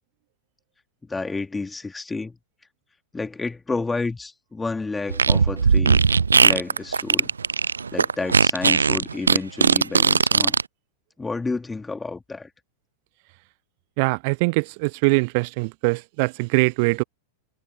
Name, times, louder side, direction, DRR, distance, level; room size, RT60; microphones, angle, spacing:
voice 1, 1.1-2.4 3.1-6.0 6.4-7.3 7.9-10.6 11.2-12.5, left 3 dB, 10° left, 3.2 m, -30 dB
Fart, 5.1-10.6, right 5 dB, 75° right, 0.6 m, -18 dB
voice 2, 14.0-17.0, right 30 dB, 45° right, 1.1 m, -22 dB
figure-of-eight pair, 90°, 0 cm